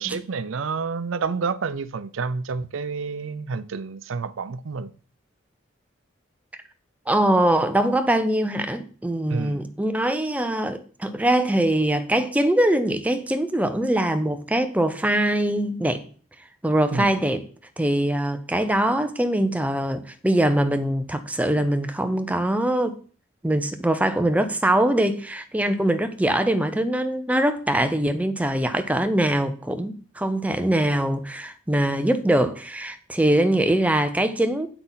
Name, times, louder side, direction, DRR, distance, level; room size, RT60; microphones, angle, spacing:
voice 1, 0.0-4.9 9.3-9.7 16.9-17.2, right 5 dB, 75° right, 0.5 m, -29 dB
voice 2, 7.1-16.0 16.6-17.4 17.8-23.0 23.4-34.7, right 1 dB, 5° right, 0.7 m, -22 dB
8.7 x 5.9 x 4.1 m
head